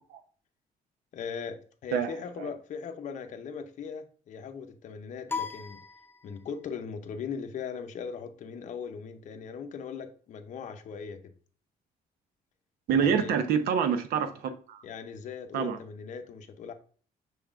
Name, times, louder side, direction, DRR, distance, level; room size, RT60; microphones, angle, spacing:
voice 1, 1.1-5.8 6.2-11.3 13.0-13.3 14.8-16.7, left 6 dB, 55° left, 0.6 m, -39 dB
sound 1, 5.3-6.7, left 5 dB, 15° left, 0.6 m, -37 dB
voice 2, 12.9-14.8 15.5-15.8, right 7 dB, 80° right, 0.7 m, -26 dB
6.1 x 3.5 x 2.4 m
cardioid pair, 105°, 15 cm